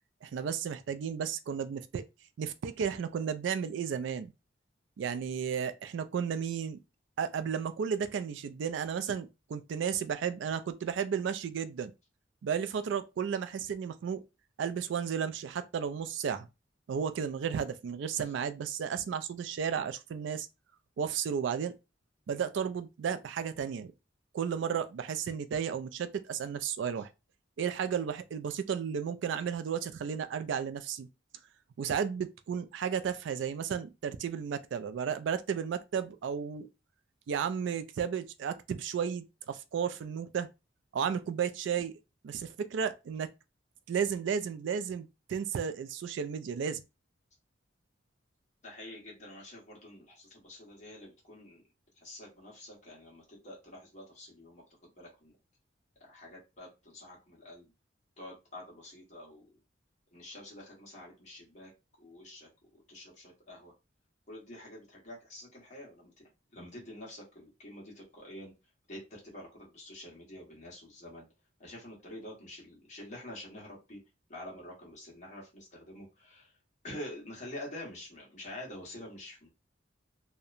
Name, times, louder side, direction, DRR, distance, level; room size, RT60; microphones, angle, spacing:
voice 1, 0.2-2.0 2.4-4.3 5.0-6.8 7.2-11.9 12.4-14.2 14.6-16.5 16.9-20.5 21.0-21.7 22.3-23.9 24.3-27.1 27.6-31.1 31.8-36.7 37.3-40.5 40.9-41.9 42.2-43.3 43.9-46.8, right 7 dB, 70° right, 0.3 m, -33 dB
voice 2, 48.6-51.6 52.0-55.3 56.0-57.7 58.2-59.5 60.1-61.7 62.0-63.7 64.3-66.1 66.5-68.5 68.9-71.3 71.6-74.0 74.3-76.5 76.8-79.5, left 1 dB, 35° left, 1.1 m, -47 dB
2.8 x 2.1 x 2.4 m
head